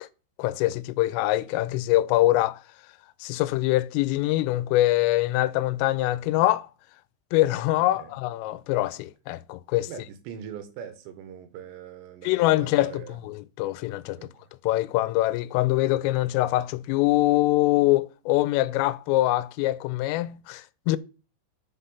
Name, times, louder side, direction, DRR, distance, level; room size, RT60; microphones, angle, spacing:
voice 1, 0.4-2.6 3.2-6.7 7.3-9.9 12.2-14.2 14.6-21.0, left 16 dB, 85° left, 3.1 m, -24 dB
voice 2, 7.8-8.1 9.9-13.2 14.2-14.3, right 8 dB, 70° right, 3.0 m, -42 dB
10.0 x 5.8 x 5.5 m
omnidirectional pair, 5.9 m